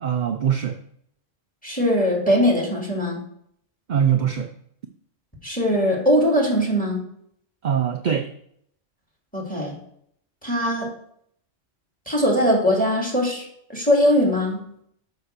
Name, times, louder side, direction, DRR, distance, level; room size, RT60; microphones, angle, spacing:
voice 1, 0.0-0.8 3.9-4.5 7.6-8.3, right 8 dB, 55° right, 6 dB, 0.5 m, -22 dB
voice 2, 1.6-3.2 5.4-7.0 9.3-9.7 10.4-10.9 12.1-13.4 13.7-14.6, equal, 5° left, -2 dB, 2.5 m, -20 dB
5.6 x 5.3 x 6.6 m, 0.69 s
omnidirectional pair, 1.3 m